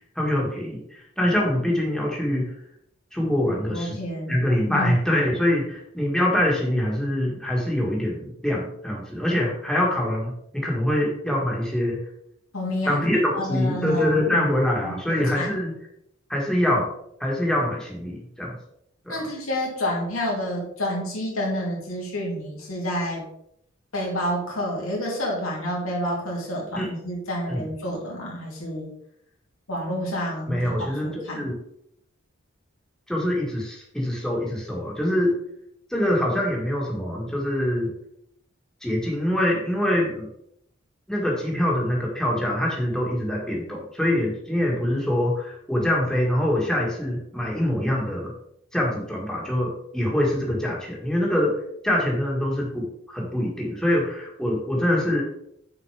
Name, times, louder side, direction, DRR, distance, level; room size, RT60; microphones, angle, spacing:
voice 1, 0.1-2.5 3.1-4.0 4.3-12.0 12.8-15.7 16.3-16.9 17.2-18.6 19.0-19.3 26.8-26.9 27.5-27.6 30.5-31.5 33.1-35.3 35.9-37.9 38.8-40.3 41.1-48.3 48.7-51.5 51.8-55.2, left 1 dB, 5° left, -3 dB, 1.7 m, -24 dB
voice 2, 3.7-4.9 12.5-13.0 13.3-14.4 14.8-15.6 19.1-23.2 23.9-28.9 29.7-31.5, equal, 85° left, -2 dB, 2.4 m, -29 dB
6.5 x 4.5 x 4.9 m, 0.74 s
head